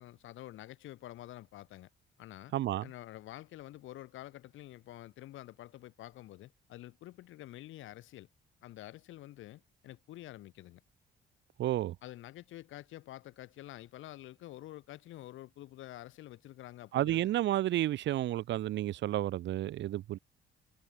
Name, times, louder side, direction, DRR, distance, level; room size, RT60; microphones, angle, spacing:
voice 1, 0.0-1.9 2.2-2.5 2.8-8.3 8.6-10.8 12.0-17.3, left 15 dB, 85° left, 3.1 m, -48 dB
voice 2, 2.5-2.9 11.6-12.0 16.9-20.2, right 13 dB, 65° right, 0.5 m, -31 dB
cardioid pair, 90°, 20 cm